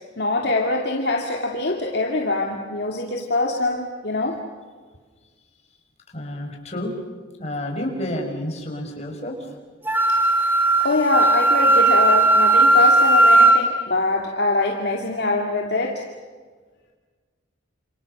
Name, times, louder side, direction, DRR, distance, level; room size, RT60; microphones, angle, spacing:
voice 1, 0.2-4.4 10.1-10.2 10.8-16.0, left 2 dB, 60° left, 0 dB, 2.5 m, -23 dB
voice 2, 6.1-6.9 7.4-9.5, left 1 dB, 35° left, 1 dB, 5.7 m, -30 dB
Wind instrument woodwind instrument, 9.9-13.6, right 2 dB, 10° right, 2.8 m, -16 dB
28.5 x 28.0 x 6.7 m, 1.5 s
head